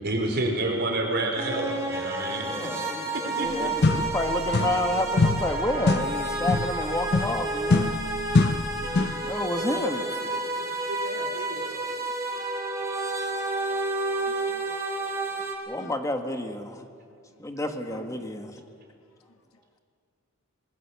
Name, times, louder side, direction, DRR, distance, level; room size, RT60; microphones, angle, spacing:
voice 1, 0.0-3.7, right 2 dB, 50° right, 3.9 m, -29 dB
sound 1, 1.4-15.5, right 2 dB, 15° right, 3.7 m, -30 dB
voice 2, 2.4-8.0 8.8-10.0 13.7-13.8 14.4-14.7 15.7-16.8 17.4-18.6, left 1 dB, 15° left, 1.5 m, -30 dB
sound 2, 3.4-3.5 3.8-4.9 5.2-9.3, left 3 dB, 50° left, 0.7 m, -25 dB
voice 3, 8.3-9.3 15.8-15.9 17.9-18.3, left 2 dB, 85° left, 1.3 m, -49 dB
voice 4, 9.5-12.0, right 2 dB, 90° right, 3.2 m, -38 dB
25.0 x 20.5 x 7.0 m
head